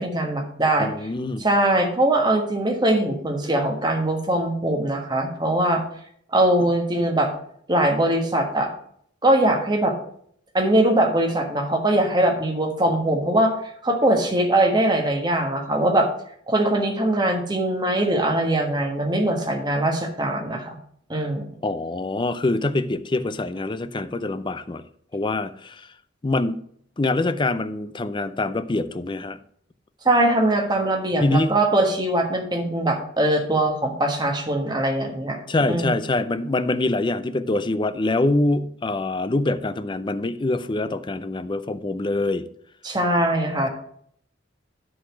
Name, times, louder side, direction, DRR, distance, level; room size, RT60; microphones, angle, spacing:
voice 1, 0.0-1.1 1.4-5.8 6.3-7.3 7.7-8.7 9.2-9.9 10.5-13.5 13.8-16.1 16.5-20.8 21.1-21.5 30.0-35.4 35.7-35.9 42.8-43.7, right 1 dB, 20° right, 3 dB, 1.4 m, -21 dB
voice 2, 0.8-1.5 21.6-24.8 25.1-25.9 26.2-26.6 27.0-29.4 31.2-31.5 35.5-42.5, left 2 dB, 25° left, 12 dB, 0.5 m, -24 dB
10.0 x 4.1 x 6.1 m, 0.64 s
head